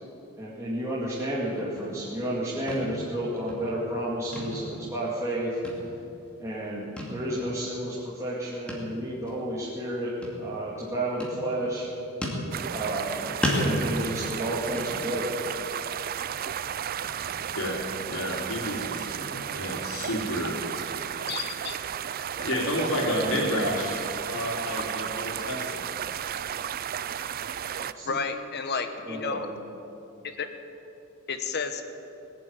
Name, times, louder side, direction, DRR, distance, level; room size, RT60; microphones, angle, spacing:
voice 1, 0.4-5.6 6.4-11.9 12.7-15.4 27.7-28.2 29.1-29.6, right 1 dB, 15° right, -8 dB, 2.3 m, -31 dB
sound 1, 1.6-2.4 2.7-3.1 3.4-4.0 4.3-5.3 5.6-6.3 7.0-7.2 7.6-7.7 8.7-9.0 9.3-9.4 10.2-10.8 11.2-11.8 12.2-13.1 13.4-15.4 15.8-16.1 16.4-16.5 17.0-17.7 18.1-20.6, equal, 5° left, 2.6 m, -34 dB
sound 2, 12.5-27.9, right 9 dB, 45° right, 0.4 m, -33 dB
voice 2, 17.5-21.3 22.2-25.9, equal, 75° left, -1 dB, 3.5 m, -31 dB
voice 3, 21.3-21.8 28.0-29.5 30.4-30.5 31.3-31.8, left 5 dB, 50° left, 7 dB, 1.1 m, -31 dB
19.0 x 7.9 x 9.4 m, 2.8 s
head